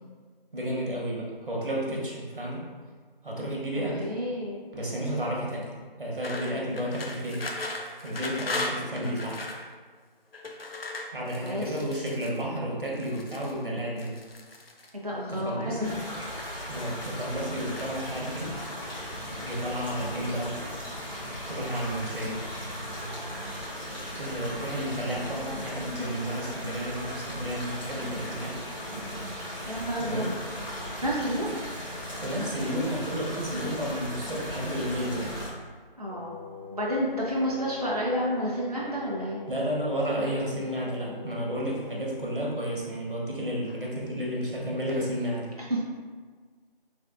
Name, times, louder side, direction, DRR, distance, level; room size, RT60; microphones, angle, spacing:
voice 1, 0.5-2.6 3.2-4.1 4.7-5.7 6.0-7.5 8.0-9.4 11.1-14.2 15.3-15.9 16.7-18.5 19.4-20.5 21.5-22.4 23.9-28.6 30.0-30.3 31.4-31.5 32.2-35.3 39.5-45.5, equal, 60° right, -3 dB, 1.0 m, -32 dB
voice 2, 4.0-4.6 11.4-11.6 14.9-16.0 29.7-30.3 31.0-31.6 36.0-36.4 36.7-39.4 45.7-45.9, equal, 40° right, -5 dB, 0.4 m, -30 dB
sound 1, 6.2-9.6 10.3-12.4 12.9-13.6 14.0-14.9 15.8-16.5 16.8-17.3 17.8-18.5, left 2 dB, 80° left, 0.6 m, -37 dB
sound 2, 15.8-35.5, equal, 50° left, 1.5 m, -37 dB
Wind instrument woodwind instrument, 36.0-42.6, left 5 dB, 30° left, 1.0 m, -44 dB
3.3 x 3.2 x 2.4 m, 1.5 s
figure-of-eight pair, 175°, 29 cm